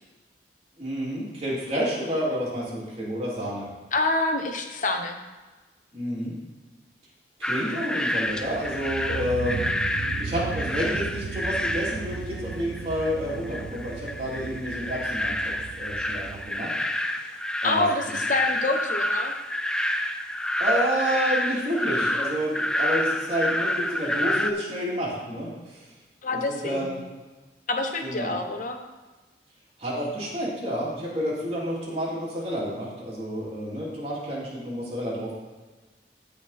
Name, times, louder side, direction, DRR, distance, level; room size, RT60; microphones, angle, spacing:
voice 1, 0.8-3.7 5.9-6.4 7.4-9.6 10.2-16.7 17.6-18.2 20.6-25.8 26.3-27.0 28.0-28.4 29.8-35.3, equal, 35° right, -6 dB, 3.0 m, -30 dB
voice 2, 3.9-5.2 17.6-19.3 26.2-27.0 27.7-28.8, left 2 dB, 45° left, 5 dB, 0.9 m, -26 dB
sound 1, 7.4-24.5, left 1 dB, 5° left, 0.3 m, -29 dB
sound 2, 8.3-16.5, right 5 dB, 65° right, 0.4 m, -36 dB
15.0 x 5.0 x 4.2 m, 1.3 s
head